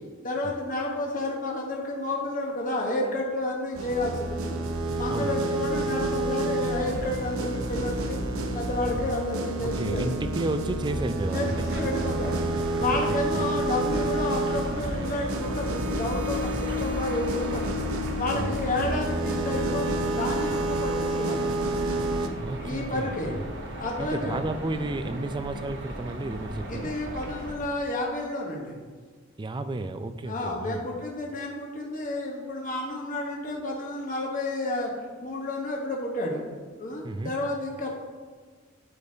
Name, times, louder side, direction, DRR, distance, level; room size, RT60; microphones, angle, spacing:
voice 1, 0.2-4.7 4.9-8.2 8.5-10.1 11.3-12.4 12.8-17.8 18.2-21.5 22.6-23.3 23.7-24.4 26.7-28.8 30.2-34.9 35.2-36.5 36.8-37.9, left 2 dB, 40° left, -1 dB, 1.1 m, -31 dB
sound 1, 3.7-22.3, right 1 dB, 90° right, 0.7 m, -29 dB
voice 2, 5.1-5.7 8.9-9.1 9.6-11.7 12.9-13.5 18.3-18.6 22.2-23.5 24.0-27.0 29.4-30.9 37.0-37.3, right 2 dB, 20° right, 10 dB, 0.4 m, -33 dB
sound 2, 11.4-27.5, right 1 dB, 60° right, 1.1 m, -37 dB
12.5 x 5.1 x 2.8 m, 1.5 s
head